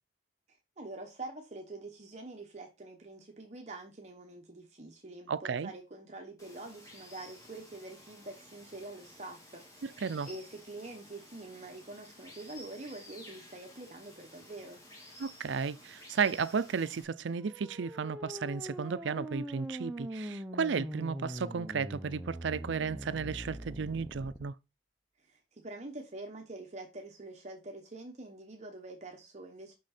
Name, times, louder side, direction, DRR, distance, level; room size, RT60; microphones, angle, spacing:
voice 1, 0.5-14.8 25.2-29.7, right 2 dB, 40° right, 1.0 m, -46 dB
voice 2, 5.3-5.7 10.0-10.3 15.2-24.5, right 5 dB, 75° right, 0.5 m, -33 dB
Water, 6.4-17.0, left 1 dB, 20° left, 1.8 m, -54 dB
sound 1, 17.3-24.4, equal, 10° right, 0.7 m, -42 dB
6.3 x 5.6 x 4.2 m
head